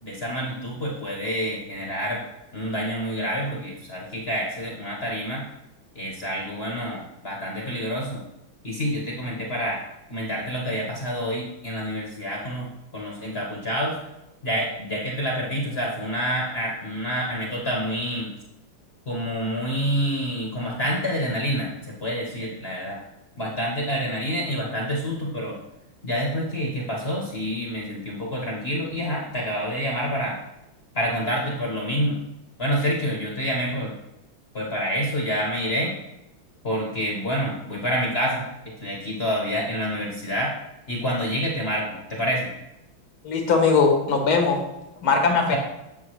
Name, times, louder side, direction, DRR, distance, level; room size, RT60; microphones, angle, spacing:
voice 1, 0.0-2.2 2.5-5.4 5.9-8.2 8.6-9.8 10.1-14.0 14.4-18.3 19.1-23.0 23.4-25.6 26.0-30.4 30.9-32.2 32.6-33.9 34.5-35.9 36.6-40.5 40.9-42.5 45.5-45.6, equal, 35° left, -2 dB, 1.3 m, -27 dB
voice 2, 43.2-44.6 45.0-45.6, left 4 dB, 80° left, 3 dB, 2.2 m, -20 dB
9.5 x 6.9 x 3.1 m, 0.91 s
omnidirectional pair, 2.3 m